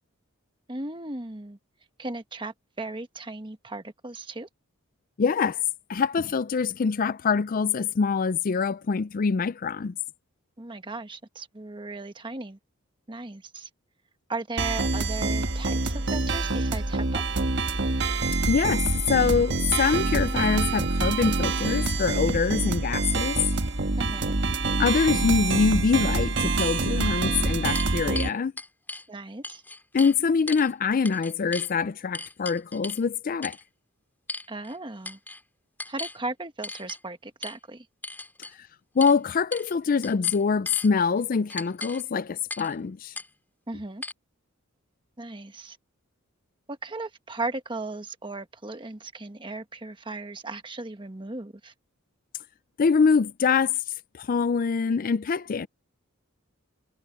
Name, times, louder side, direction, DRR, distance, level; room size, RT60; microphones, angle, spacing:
voice 1, 0.7-1.6 2.0-4.5 10.6-12.6 13.1-13.7 14.3-17.2 24.0-24.3 29.1-29.6 34.5-35.2 35.9-37.9 43.7-44.0 45.2-45.8 46.7-51.7, right 2 dB, 25° right, 1.3 m, -36 dB
voice 2, 5.2-5.6 5.9-9.9 18.4-23.4 24.8-28.5 29.9-33.6 39.0-43.1 52.8-53.8 54.1-55.7, left 5 dB, 40° left, 0.4 m, -24 dB
sound 1, 14.6-28.3, right 3 dB, 55° right, 1.5 m, -26 dB
sound 2, 27.2-29.0 29.4-30.2 30.5-30.7 31.0-31.7 32.1-33.0 33.4-33.6 34.3-34.8 35.0-35.4 35.8-36.2 36.6-37.0 37.4-37.6 38.0-38.5 39.0-39.2 39.5-39.7 40.0-40.9 41.5-42.0 42.5-42.7 43.1-43.3 44.0-44.1, left 2 dB, 10° left, 6.1 m, -37 dB
head